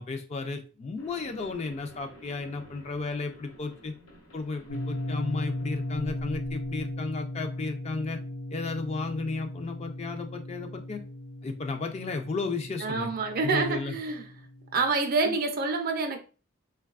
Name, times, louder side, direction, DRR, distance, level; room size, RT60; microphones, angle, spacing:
voice 1, 0.0-3.9 4.3-8.2 8.5-11.0 11.4-13.1 13.4-14.0 15.2-15.3, left 3 dB, 30° left, 0.3 m, -34 dB
sound 1, 1.0-7.0, equal, 85° left, 0.8 m, -50 dB
sound 2, 4.7-14.9, left 1 dB, 60° left, 1.1 m, -37 dB
voice 2, 12.8-14.3 14.7-16.2, right 4 dB, 45° right, 0.4 m, -27 dB
3.2 x 2.2 x 2.3 m
head